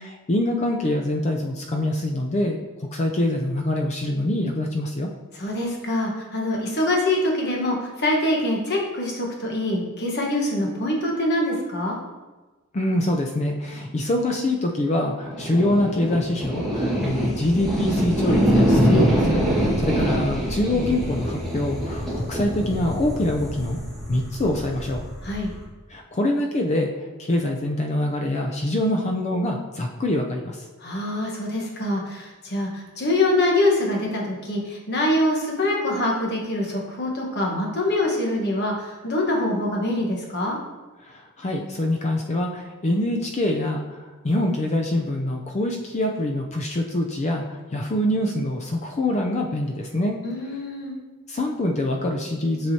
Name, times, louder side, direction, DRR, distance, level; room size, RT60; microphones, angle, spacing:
voice 1, 0.0-2.6 2.9-5.1 12.7-23.8 24.1-25.0 25.9-26.9 27.2-30.6 41.0-50.2 51.3-52.7, left 1 dB, 30° left, 2 dB, 0.4 m, -25 dB
voice 2, 5.3-12.0 25.2-25.5 30.8-40.6 50.2-50.9, left 1 dB, 50° left, -1 dB, 1.2 m, -24 dB
sound 1, 15.2-25.6, equal, ahead, 1.5 m, -24 dB
7.2 x 4.8 x 2.8 m, 1.2 s
head